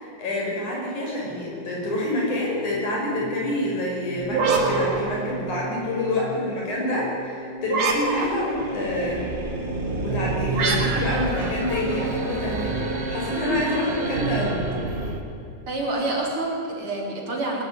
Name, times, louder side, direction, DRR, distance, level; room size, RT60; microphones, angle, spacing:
voice 1, 0.0-9.3 10.0-14.6, left 1 dB, 85° left, -3 dB, 7.3 m, -27 dB
sound 1, 1.3-14.3, right 3 dB, 5° right, 0.8 m, -36 dB
sound 2, 4.2-5.8 7.7-8.7 10.5-12.4, right 4 dB, 60° right, 3.5 m, -26 dB
sound 3, 8.6-15.2, right 2 dB, 30° right, 1.5 m, -29 dB
voice 2, 15.7-17.6, right 2 dB, 45° right, -1 dB, 4.4 m, -27 dB
20.5 x 13.0 x 9.8 m, 2.8 s
omnidirectional pair, 3.4 m